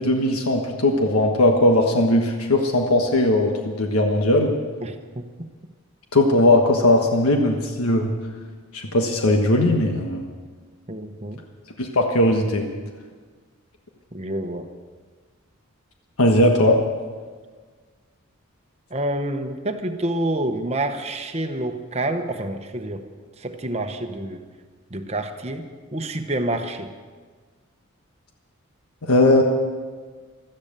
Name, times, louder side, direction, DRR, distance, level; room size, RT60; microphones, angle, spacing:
voice 1, 0.0-4.5 6.1-8.1 8.7-10.2 11.8-12.7 16.2-16.8 29.0-29.4, left 1 dB, 85° left, 3 dB, 1.4 m, -18 dB
voice 2, 4.8-5.5 10.9-11.4 14.1-14.7 18.9-23.1 23.4-24.4 24.9-26.9, right 1 dB, 30° right, 6 dB, 0.9 m, -28 dB
16.0 x 13.0 x 6.7 m, 1.5 s
head